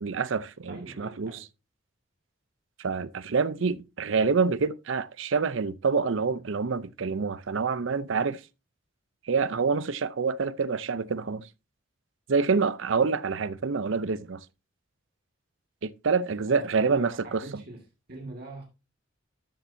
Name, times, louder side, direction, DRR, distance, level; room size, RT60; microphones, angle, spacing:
voice 1, 0.0-1.3 2.8-8.4 9.2-11.5 12.3-14.4 15.8-17.6, right 5 dB, 70° right, 0.5 m, -27 dB
voice 2, 0.7-1.4 16.5-17.8 18.1-18.6, right 2 dB, 50° right, 1.9 m, -43 dB
13.0 x 7.3 x 2.7 m
head